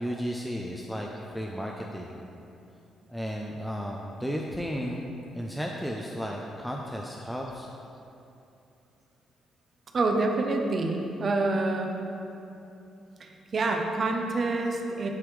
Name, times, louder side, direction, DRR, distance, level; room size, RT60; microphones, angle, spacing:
voice 1, 0.0-2.2 3.1-5.0 5.3-7.7, equal, ahead, -1 dB, 0.4 m, -34 dB
voice 2, 9.9-11.9 13.2-15.1, right 2 dB, 45° right, 3 dB, 0.6 m, -27 dB
9.2 x 3.3 x 3.2 m, 2.8 s
cardioid pair, 90°, 0 cm